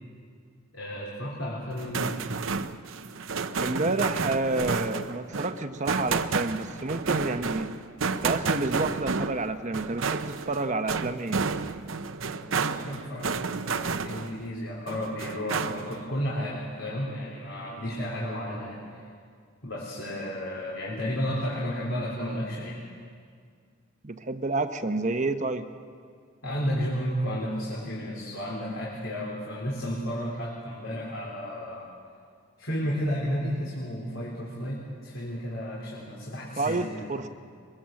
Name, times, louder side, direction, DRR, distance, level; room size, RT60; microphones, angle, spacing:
voice 1, 0.7-2.3 12.4-19.0 19.6-22.8 26.4-31.9 32.6-37.0, equal, 70° left, -4 dB, 3.8 m, -32 dB
sound 1, 1.7-14.5 14.9-16.1, right 4 dB, 70° right, 0.8 m, -31 dB
voice 2, 3.6-7.7 8.2-11.4 24.0-25.7 36.6-37.3, right 2 dB, 35° right, 8 dB, 0.9 m, -29 dB
22.5 x 22.5 x 7.7 m, 2.1 s
head